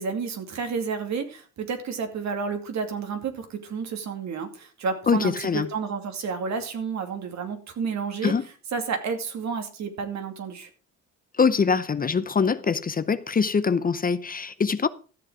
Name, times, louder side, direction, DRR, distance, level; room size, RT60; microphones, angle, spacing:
voice 1, 0.0-8.3 8.7-10.7, right 5 dB, 65° right, 2.5 m, -31 dB
voice 2, 5.1-5.7 8.2-8.5 11.4-14.9, left 5 dB, 30° left, 0.7 m, -23 dB
13.5 x 7.2 x 5.0 m
cardioid pair, 90°, 30 cm